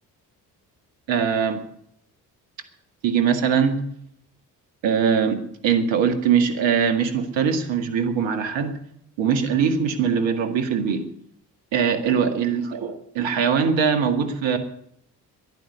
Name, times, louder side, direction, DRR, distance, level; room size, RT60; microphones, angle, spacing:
voice 1, 1.1-1.6 3.0-3.9 4.8-8.7 9.2-11.0 11.7-14.6, right 7 dB, 65° right, 7 dB, 2.0 m, -22 dB
11.5 x 10.5 x 9.6 m, 0.71 s
hypercardioid pair, 40°, 47 cm